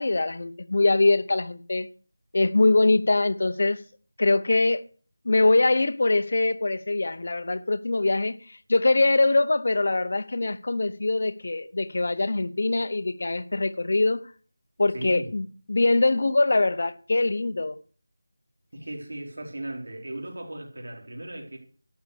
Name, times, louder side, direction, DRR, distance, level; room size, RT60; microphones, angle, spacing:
voice 1, 0.0-1.9 2.3-3.8 4.2-4.8 5.2-14.2 14.8-17.8, left 2 dB, 45° left, 0.8 m, -23 dB
voice 2, 14.9-15.3 18.7-21.6, right 1 dB, 70° right, 4.2 m, -37 dB
11.5 x 7.1 x 6.6 m
figure-of-eight pair, 175°, 0 cm